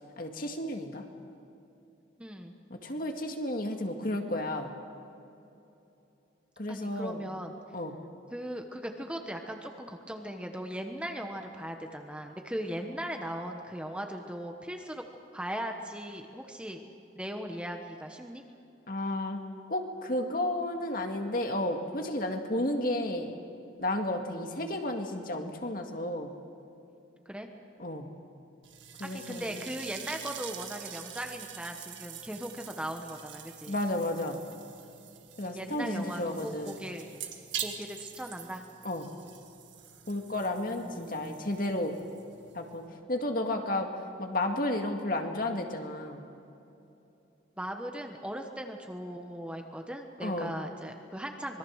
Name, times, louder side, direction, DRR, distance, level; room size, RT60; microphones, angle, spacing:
voice 1, 0.2-1.0 2.7-4.7 6.6-7.2 7.7-7.9 18.9-19.4 19.7-23.3 23.8-26.3 27.8-28.1 29.0-29.6 33.7-34.4 35.4-36.9 38.8-39.1 40.1-42.0 42.5-42.8 43.1-43.9 44.2-46.3 50.2-50.5, left 1 dB, 45° left, 4 dB, 2.0 m, -32 dB
voice 2, 2.2-2.5 6.7-7.6 8.3-15.0 15.3-16.8 17.2-18.4 27.2-27.5 29.0-33.8 35.4-37.1 37.6-38.6 40.8-41.5 47.6-51.6, equal, 5° right, 3 dB, 1.2 m, -38 dB
sound 1, 28.6-42.9, right 9 dB, 70° right, 1.7 m, -45 dB
25.5 x 21.5 x 6.5 m, 2.8 s
head